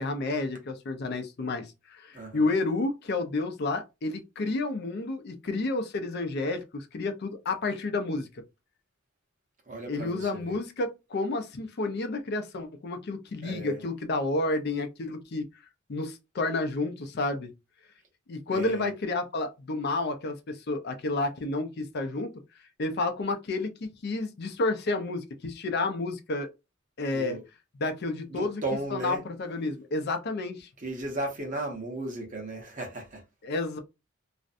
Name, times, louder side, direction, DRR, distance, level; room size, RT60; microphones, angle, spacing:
voice 1, 0.0-8.3 9.9-15.4 15.9-17.5 18.3-22.3 22.8-26.5 27.0-27.4 27.8-28.6 28.9-30.7 33.4-33.8, left 2 dB, 55° left, 0.5 m, -30 dB
voice 2, 2.1-2.5 9.7-10.6 13.4-13.8 18.5-18.9 27.1-27.4 28.3-29.2 30.8-33.2, right 2 dB, 40° right, 0.8 m, -35 dB
2.5 x 2.1 x 2.5 m
head